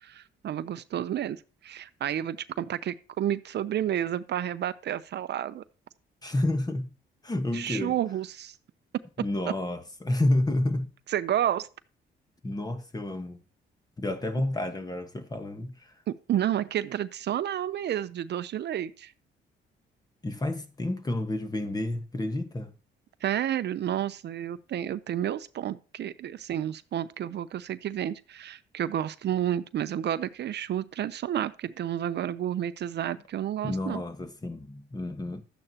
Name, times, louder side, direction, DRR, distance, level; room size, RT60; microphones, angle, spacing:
voice 1, 0.0-5.6 7.5-8.5 11.1-11.7 16.1-19.1 23.2-34.0, right 10 dB, 60° right, 0.6 m, -30 dB
voice 2, 6.2-6.9 7.2-8.0 9.2-10.9 12.4-13.4 14.0-15.9 20.2-22.7 33.6-35.4, left 1 dB, 20° left, 1.2 m, -30 dB
12.0 x 8.8 x 2.8 m
cardioid pair, 90°, 20 cm